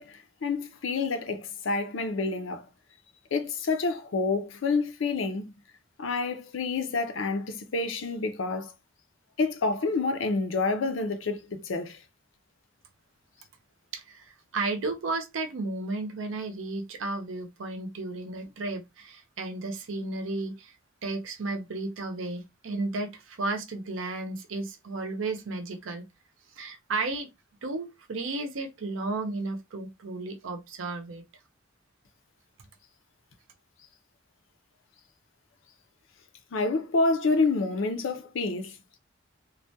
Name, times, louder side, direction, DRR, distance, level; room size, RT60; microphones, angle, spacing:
voice 1, 0.0-2.7 3.3-5.5 6.0-8.7 9.4-12.0 36.5-39.0, left 3 dB, 70° left, 0.5 m, -28 dB
voice 2, 13.9-20.7 21.0-26.1 26.6-27.3 27.6-31.2, right 3 dB, 75° right, 0.6 m, -33 dB
2.3 x 2.2 x 2.7 m
head